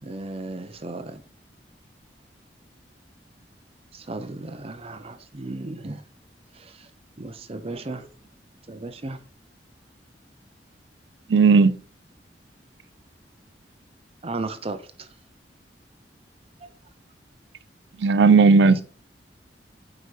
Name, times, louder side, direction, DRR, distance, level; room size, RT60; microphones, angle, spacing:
voice 1, 0.0-1.2 3.9-6.0 6.5-6.9 7.2-8.1 8.7-9.2 14.2-15.1 16.6-16.7 18.6-18.8, right 2 dB, 35° right, 0.7 m, -35 dB
voice 2, 11.3-11.7 18.0-18.8, right 4 dB, 85° right, 0.5 m, -15 dB
8.5 x 4.9 x 3.3 m
head